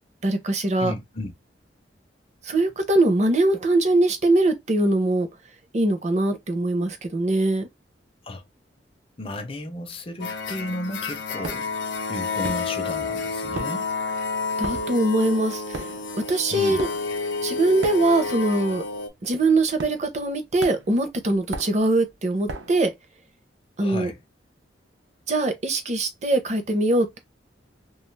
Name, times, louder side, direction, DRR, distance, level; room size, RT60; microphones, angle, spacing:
voice 1, 0.2-0.9 2.4-5.3 5.7-7.7 14.6-15.6 16.3-16.9 17.4-18.8 19.2-22.9 23.8-24.1 25.3-27.2, right 2 dB, 40° right, 0.6 m, -22 dB
voice 2, 0.8-1.3 8.2-8.4 9.2-11.7 12.1-13.9 16.5-16.8 23.8-24.2, left 1 dB, 30° left, 0.5 m, -33 dB
sound 1, 10.2-19.1, left 4 dB, 85° left, 0.5 m, -30 dB
sound 2, 11.4-11.8 12.4-13.1 13.3-18.5 18.7-19.0 19.8-20.3 20.6-22.9, right 3 dB, 85° right, 0.6 m, -38 dB
2.3 x 2.3 x 3.1 m
head